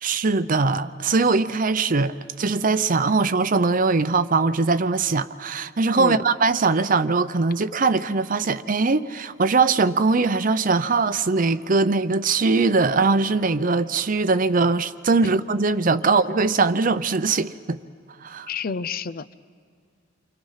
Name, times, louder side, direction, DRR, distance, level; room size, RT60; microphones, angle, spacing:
voice 1, 0.0-17.8 18.2-18.5, right 4 dB, 45° right, 0.7 m, -21 dB
voice 2, 18.5-19.3, left 5 dB, 50° left, 0.6 m, -30 dB
29.5 x 25.0 x 5.7 m
head